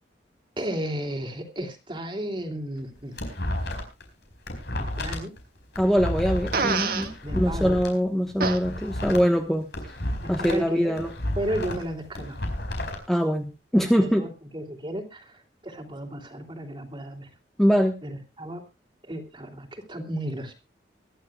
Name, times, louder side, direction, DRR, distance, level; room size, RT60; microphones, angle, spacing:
voice 1, 0.6-3.1 4.7-5.3 7.2-7.8 10.4-11.0 11.3-12.4 14.0-15.4 15.6-17.3 18.0-18.6 19.1-20.5, right 1 dB, 30° right, 5 dB, 2.8 m, -33 dB
sound 1, 2.8-4.0 4.3-7.9 8.3-10.7 10.9-13.0, left 1 dB, 65° left, 4.5 m, -31 dB
voice 2, 5.8-9.7 10.3-11.1 13.1-14.3 17.6-18.0, equal, ahead, 4 dB, 1.2 m, -23 dB
Fart, 6.5-7.1 8.4-8.6, right 4 dB, 55° right, 1.7 m, -25 dB
24.0 x 10.5 x 2.3 m, 0.27 s
head